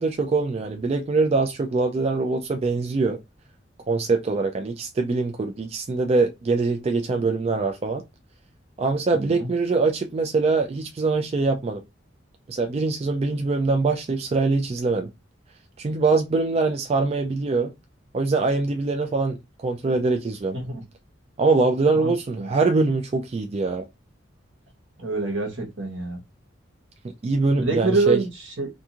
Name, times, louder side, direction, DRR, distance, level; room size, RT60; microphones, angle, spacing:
voice 1, 0.0-3.2 3.9-8.0 8.8-11.8 12.5-15.1 15.8-17.7 18.1-19.4 19.6-20.6 21.4-23.9 27.2-28.2, right 3 dB, 35° right, 0.3 m, -23 dB
voice 2, 9.1-9.5 20.6-20.8 22.0-22.1 22.4-22.5 25.0-26.2 27.6-28.7, right 3 dB, 80° right, 1.2 m, -26 dB
2.6 x 2.3 x 2.8 m
head